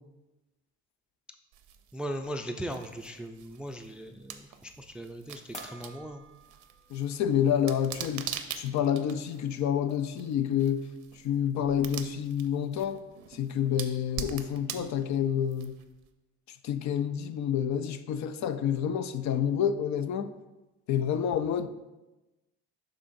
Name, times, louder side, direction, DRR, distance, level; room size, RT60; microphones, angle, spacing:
sound 1, 1.5-16.1, right 9 dB, 80° right, 0.6 m, -44 dB
voice 1, 1.9-6.2, equal, 5° right, 0.3 m, -38 dB
sound 2, 5.5-7.2 7.6-7.7 9.2-9.3 9.6-10.3, left 1 dB, 20° left, 1.3 m, -49 dB
voice 2, 6.9-8.3 8.6-10.9 11.2-13.0 13.3-15.8 16.6-20.3 20.9-21.7, left 9 dB, 65° left, 0.5 m, -28 dB
11.5 x 3.8 x 2.6 m
cardioid pair, 90°, 30 cm